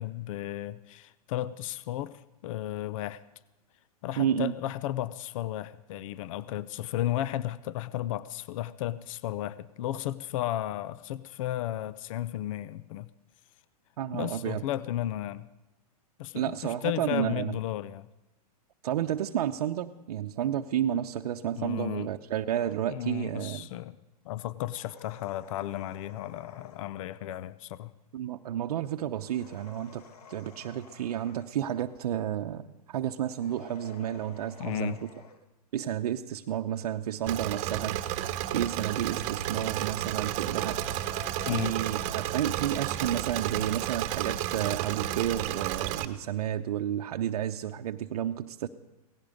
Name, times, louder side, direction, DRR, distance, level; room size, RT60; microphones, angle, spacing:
voice 1, 0.0-2.1 2.4-3.2 4.0-13.1 14.1-15.5 16.2-18.1 21.6-22.1 22.9-24.0 24.2-27.9 34.6-35.0 41.5-41.8, left 13 dB, 55° left, 17 dB, 0.7 m, -34 dB
voice 2, 4.2-4.5 14.0-14.6 16.3-17.6 18.8-23.7 28.1-35.1 35.7-38.0 38.5-40.8 41.4-48.7, right 10 dB, 70° right, 5 dB, 0.8 m, -31 dB
sound 1, 22.5-22.8 24.7-26.9 29.2-31.5 33.3-35.4 37.1-38.7 40.7-42.3, left 6 dB, 70° left, 1.9 m, -52 dB
Engine / Mechanisms, 37.3-46.0, right 13 dB, 35° right, 1.1 m, -32 dB
18.0 x 15.5 x 5.1 m, 1.0 s
hypercardioid pair, 135°, 20 cm